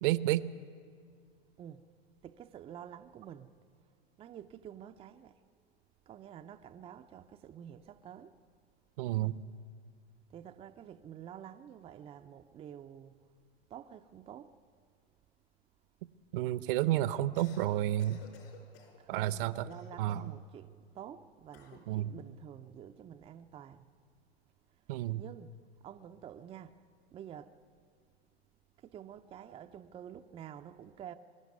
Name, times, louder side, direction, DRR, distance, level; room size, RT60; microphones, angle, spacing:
voice 1, 0.0-0.5 9.0-9.4 16.3-18.2 19.1-19.7 20.0-20.3 21.9-22.1 24.9-25.2, right 14 dB, 55° right, 0.7 m, -31 dB
voice 2, 1.6-1.9 2.2-3.5 4.2-5.4 6.1-8.4 10.3-13.2 13.7-14.5 19.0-23.9 25.2-25.6 25.8-26.8 27.1-27.5 28.8-31.2, right 9 dB, 15° right, 0.5 m, -49 dB
Cough, 17.2-17.7 18.0-19.0 19.7-20.4 21.5-21.9, left 6 dB, 65° left, 4.7 m, -55 dB
23.0 x 12.5 x 9.5 m
hypercardioid pair, 120°, 33 cm